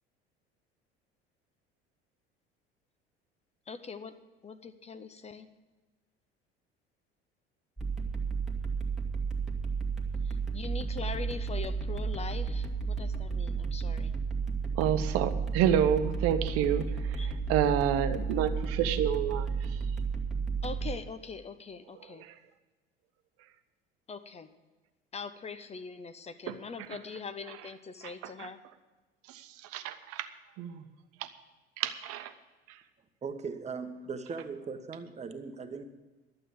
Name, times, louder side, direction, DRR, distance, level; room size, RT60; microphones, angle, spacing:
voice 1, 3.7-4.1 4.4-5.5 10.2-14.1 17.2-17.3 20.6-22.2 24.1-24.5 25.1-28.6, left 5 dB, 20° left, 12 dB, 0.9 m, -42 dB
sound 1, 7.8-20.9, right 5 dB, ahead, 2.0 m, -32 dB
voice 2, 14.7-19.8 22.2-22.4 26.5-26.6 28.2-28.5 29.3-30.3 30.6-30.8 31.2-31.3 31.8-32.3 32.7-32.8, right 9 dB, 50° right, 10 dB, 1.0 m, -29 dB
voice 3, 33.2-35.8, right 5 dB, 20° right, 7 dB, 1.2 m, -39 dB
12.0 x 7.8 x 8.5 m, 1.2 s
figure-of-eight pair, 65°, 31 cm